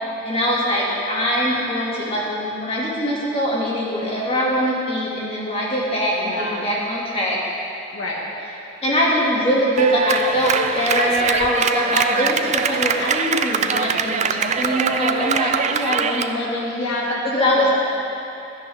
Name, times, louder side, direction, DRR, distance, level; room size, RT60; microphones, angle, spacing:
voice 1, 0.2-7.4 8.8-16.7 17.3-17.7, equal, 30° left, -6 dB, 2.4 m, -22 dB
voice 2, 6.1-6.7 7.9-8.3 11.9-12.3 16.6-17.7, left 1 dB, 70° left, -3 dB, 2.0 m, -28 dB
Clapping, 9.8-16.3, right 6 dB, 35° right, 0.4 m, -22 dB
16.5 x 11.5 x 3.6 m, 2.8 s
head